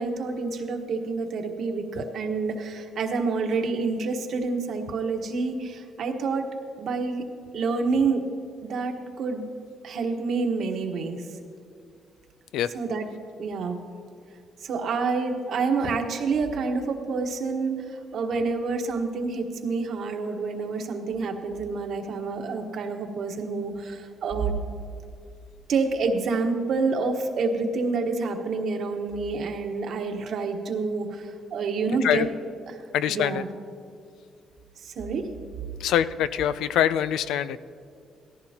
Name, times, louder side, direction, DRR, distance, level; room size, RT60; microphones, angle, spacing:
voice 1, 0.0-6.5 6.8-7.2 7.5-8.2 8.6-9.5 9.8-11.3 12.7-13.1 13.4-13.8 14.6-24.6 25.7-32.3 32.7-32.8 33.1-33.5 34.8-35.3, right 4 dB, 65° right, 4 dB, 1.3 m, -28 dB
voice 2, 32.9-33.4 35.8-37.6, left 10 dB, 85° left, 14 dB, 0.4 m, -24 dB
17.5 x 14.5 x 2.9 m, 2.3 s
cardioid pair, 90°, 0 cm